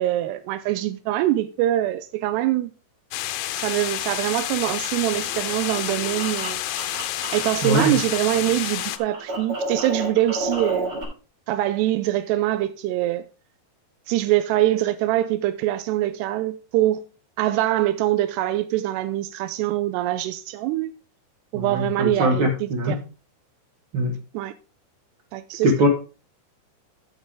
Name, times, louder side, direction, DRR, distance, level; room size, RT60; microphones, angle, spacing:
voice 1, 0.0-2.7 3.5-6.6 7.3-11.0 11.5-13.3 14.1-17.0 17.4-20.9 21.5-23.0 24.3-24.5 25.3-25.7, right 14 dB, 85° right, 2.7 m, -24 dB
sound 1, 3.1-9.0, left 14 dB, 80° left, 2.2 m, -29 dB
sound 2, 5.1-8.5 8.7-11.0, right 1 dB, 35° right, 4.1 m, -32 dB
voice 2, 7.6-7.9 21.5-23.0 23.9-24.1 25.6-25.9, equal, 70° right, 1.2 m, -21 dB
12.0 x 7.3 x 3.6 m
omnidirectional pair, 4.7 m